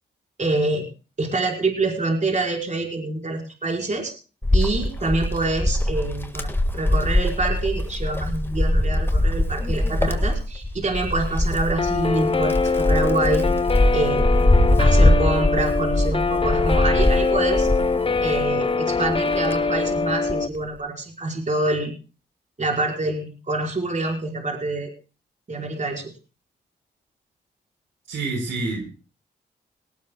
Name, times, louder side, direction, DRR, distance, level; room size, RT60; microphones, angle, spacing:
voice 1, 0.4-0.8 1.2-4.1 4.5-6.5 6.7-13.4 13.9-14.5 14.8-17.7 18.2-21.9 22.6-24.9 25.5-26.0, right 2 dB, 40° right, 1 dB, 4.7 m, -26 dB
Wind, 4.4-18.5 19.0-20.5, left 1 dB, 10° left, 1.6 m, -22 dB
Guitar, 11.8-20.5, left 4 dB, 30° left, 0.8 m, -23 dB
voice 2, 28.1-28.9, right 3 dB, 80° right, 4 dB, 4.8 m, -27 dB
19.0 x 18.0 x 2.3 m, 0.34 s
cardioid pair, 65°, 19 cm